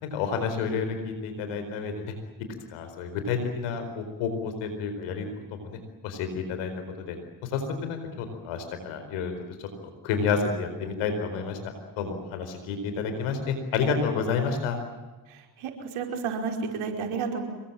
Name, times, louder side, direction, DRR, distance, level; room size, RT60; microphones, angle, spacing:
voice 1, 0.0-2.1 2.7-6.7 7.0-7.2 7.4-9.3 9.6-9.7 10.0-11.6 12.0-14.8, left 5 dB, 90° left, 7 dB, 4.7 m, -30 dB
voice 2, 15.3-17.4, right 5 dB, 80° right, 3 dB, 5.2 m, -31 dB
26.5 x 22.5 x 8.9 m, 1.2 s
hypercardioid pair, 40°, 49 cm